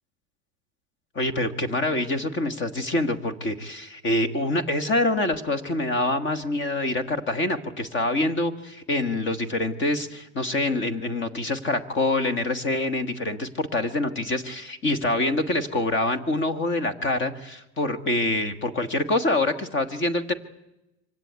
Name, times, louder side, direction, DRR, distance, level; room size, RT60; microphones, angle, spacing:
voice 1, 1.1-20.3, left 2 dB, 25° left, 12 dB, 1.6 m, -25 dB
24.5 x 17.0 x 9.5 m, 0.93 s
cardioid pair, 165°, 46 cm